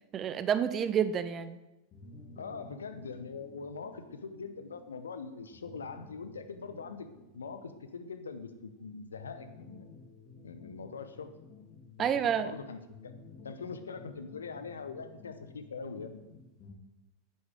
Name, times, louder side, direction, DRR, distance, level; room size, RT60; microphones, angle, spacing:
voice 1, 0.1-1.6 12.0-12.5, right 8 dB, 30° right, 13 dB, 0.6 m, -29 dB
sound 1, 1.9-16.7, left 3 dB, 35° left, 2.2 m, -54 dB
voice 2, 2.4-7.1 7.3-9.9 10.4-11.3 12.0-13.1 13.4-16.2, left 5 dB, 70° left, 10 dB, 0.8 m, -42 dB
9.8 x 9.7 x 3.7 m, 1.0 s
figure-of-eight pair, 90°, 0 cm